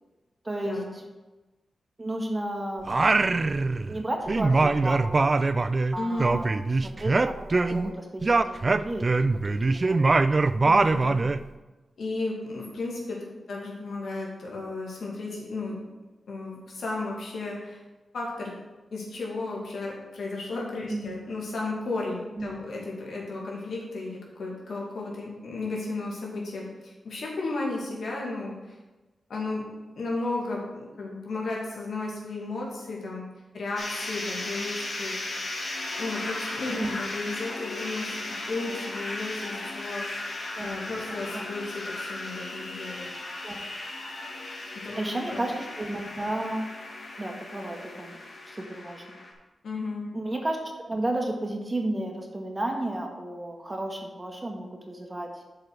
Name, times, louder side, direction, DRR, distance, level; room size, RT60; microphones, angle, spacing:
voice 1, 0.4-1.0 2.0-2.9 3.9-5.4 5.9-6.5 6.8-10.0 20.9-21.1 22.4-22.6 36.6-37.0 40.5-40.7 41.1-41.4 43.4-43.6 44.9-46.7 47.2-48.2 48.5-49.2 50.1-55.4, right 1 dB, 30° right, 2 dB, 1.6 m, -33 dB
Singing, 2.9-4.0 4.3-7.9 8.2-11.4, right 3 dB, 45° right, 0.3 m, -23 dB
voice 2, 6.0-6.4 7.7-7.8 10.6-11.2 12.0-15.8 16.3-17.8 18.1-18.5 18.9-28.8 29.3-29.6 30.0-33.3 33.5-35.2 36.0-40.3 40.6-43.1 44.7-45.5 49.6-50.1, left 3 dB, 75° left, -3 dB, 2.1 m, -34 dB
sound 1, 33.8-49.3, left 2 dB, 55° left, 1.7 m, -36 dB
7.2 x 4.9 x 6.2 m, 1.1 s
cardioid pair, 50°, 0 cm